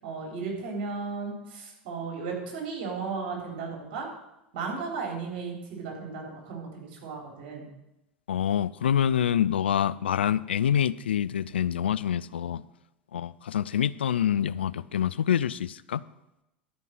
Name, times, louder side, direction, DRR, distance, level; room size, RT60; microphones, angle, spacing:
voice 1, 0.0-4.1 4.5-7.7, right 4 dB, 60° right, 0 dB, 3.7 m, -35 dB
voice 2, 8.3-12.6 13.1-16.0, left 9 dB, 85° left, 18 dB, 0.4 m, -26 dB
12.5 x 5.4 x 7.6 m, 0.92 s
hypercardioid pair, 90°, 6 cm